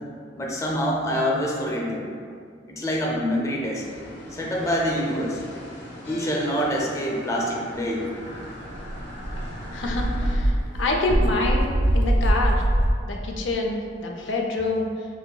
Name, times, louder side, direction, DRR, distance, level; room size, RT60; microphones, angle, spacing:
voice 1, 0.4-2.0 2.7-3.8 4.3-5.4 6.1-8.1, equal, 15° left, -2 dB, 0.5 m, -26 dB
sound 1, 3.7-10.3, equal, 70° left, 0.9 m, -40 dB
Dog, 8.3-8.4 8.7-12.9, right 1 dB, 85° right, 0.5 m, -23 dB
voice 2, 9.7-12.6 13.1-14.9, left 2 dB, 90° left, 1 dB, 0.5 m, -27 dB
6.5 x 2.7 x 2.3 m, 2.2 s
head